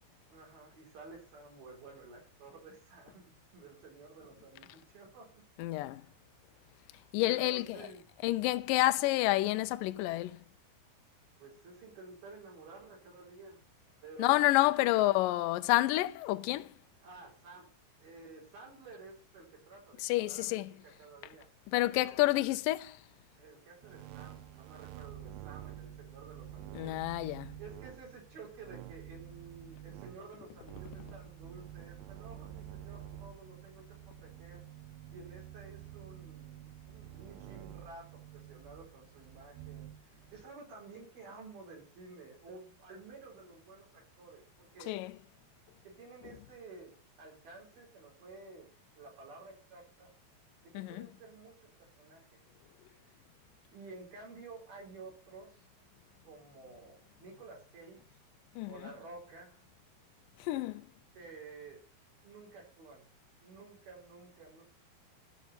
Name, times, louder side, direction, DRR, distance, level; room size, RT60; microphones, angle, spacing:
voice 1, 0.3-5.5 7.2-8.0 11.4-13.6 14.0-14.3 14.6-15.1 17.0-17.7 18.0-20.6 20.8-21.5 21.9-22.5 23.4-27.2 27.6-34.7 35.1-44.9 45.8-48.7 49.0-50.1 50.6-52.4 52.8-53.1 53.7-55.6 56.2-58.2 58.7-59.6 61.2-61.8 62.2-63.1 63.4-64.6, right 3 dB, 65° right, 6.0 m, -52 dB
voice 2, 5.6-6.1 7.1-7.9 8.2-10.4 14.2-16.8 20.0-20.7 21.7-23.0 26.7-27.5 44.9-45.2 50.7-51.1 58.6-58.9 60.4-60.9, left 17 dB, 80° left, 2.0 m, -29 dB
sound 1, 23.8-40.4, right 12 dB, 85° right, 3.0 m, -49 dB
12.5 x 5.7 x 7.4 m
omnidirectional pair, 4.6 m